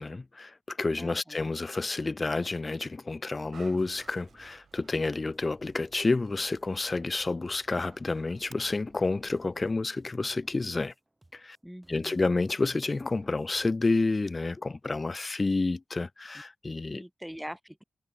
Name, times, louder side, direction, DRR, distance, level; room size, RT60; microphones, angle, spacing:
voice 1, 0.0-10.9 11.3-11.6 11.9-17.0, left 3 dB, 40° left, 0.4 m, -29 dB
voice 2, 1.0-1.5 11.6-12.2 16.9-17.8, equal, 5° right, 1.3 m, -43 dB
Dog, 3.3-9.7, right 6 dB, 80° right, 3.7 m, -58 dB
sound 1, 3.8-13.7, right 1 dB, 20° right, 4.1 m, -61 dB
cardioid pair, 50°, 0 cm